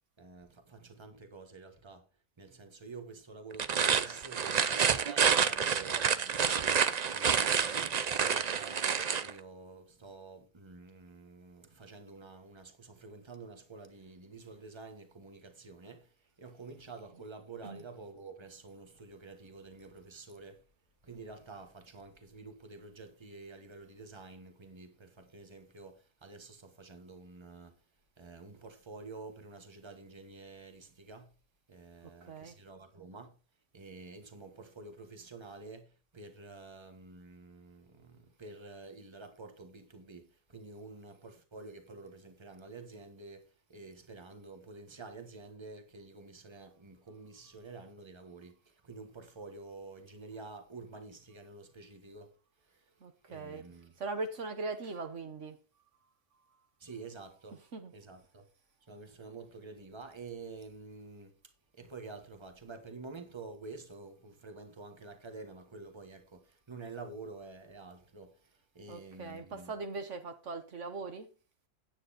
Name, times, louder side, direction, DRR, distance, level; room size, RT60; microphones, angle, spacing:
voice 1, 0.2-2.0 2.4-6.7 7.1-7.9 8.2-16.1 16.4-20.6 21.0-27.7 28.2-31.3 31.7-33.3 33.7-52.3 53.3-53.9 56.8-57.6 57.9-58.5 58.9-61.3 61.7-68.3 68.7-69.7, right 3 dB, 20° right, 1.4 m, -49 dB
sound 1, 3.5-9.3, right 7 dB, 50° right, 0.5 m, -28 dB
voice 2, 53.0-53.6 54.0-55.6 57.5-57.9 68.9-71.3, right 3 dB, 65° right, 1.4 m, -40 dB
9.4 x 8.5 x 4.1 m
omnidirectional pair, 1.3 m